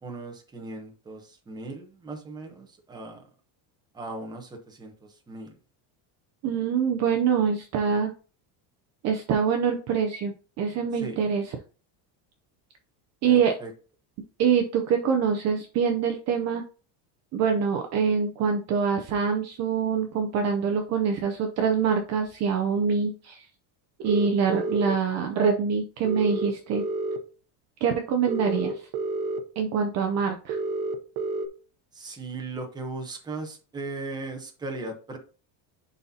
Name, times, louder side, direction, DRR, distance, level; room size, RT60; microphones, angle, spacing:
voice 1, 0.0-3.2 3.9-5.6 10.9-11.2 13.2-13.7 31.9-35.2, right 2 dB, 10° right, 2 dB, 0.9 m, -38 dB
voice 2, 6.4-8.1 9.0-10.3 10.6-11.4 13.2-13.6 14.4-16.6 17.3-23.4 24.0-26.8 27.8-28.8 29.6-30.6, right 6 dB, 35° right, 4 dB, 0.6 m, -25 dB
sound 1, 24.0-25.0 26.0-27.2 28.3-29.4 30.5-31.5, right 2 dB, 50° right, 0.9 m, -29 dB
11.0 x 4.1 x 2.8 m, 0.37 s
cardioid pair, 180°, 48 cm